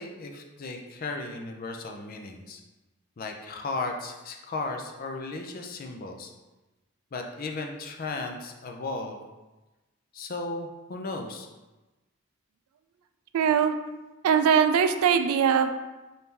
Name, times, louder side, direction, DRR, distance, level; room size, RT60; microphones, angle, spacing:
voice 1, 0.0-2.6 3.2-6.3 7.1-9.2 10.1-11.5, left 3 dB, 40° left, 3 dB, 0.4 m, -35 dB
voice 2, 13.3-13.8 14.2-15.7, right 7 dB, 85° right, 10 dB, 0.3 m, -21 dB
3.6 x 2.7 x 4.4 m, 1.1 s
head